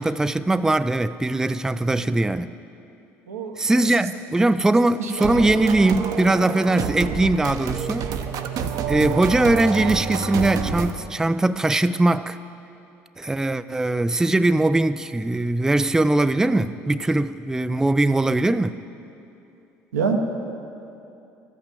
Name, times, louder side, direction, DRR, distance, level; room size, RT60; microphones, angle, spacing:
voice 1, 0.0-2.5 3.6-8.1 8.9-12.4 13.2-18.8, right 2 dB, 5° right, 13 dB, 0.3 m, -21 dB
voice 2, 3.3-3.7 4.7-5.5 7.8-7.9 8.3-8.5 19.9-20.2, right 6 dB, 90° right, 3 dB, 1.0 m, -29 dB
sound 1, 5.2-10.9, right 6 dB, 55° right, 0.7 m, -28 dB
13.5 x 5.7 x 7.6 m, 2.7 s
hypercardioid pair, 65°, 8 cm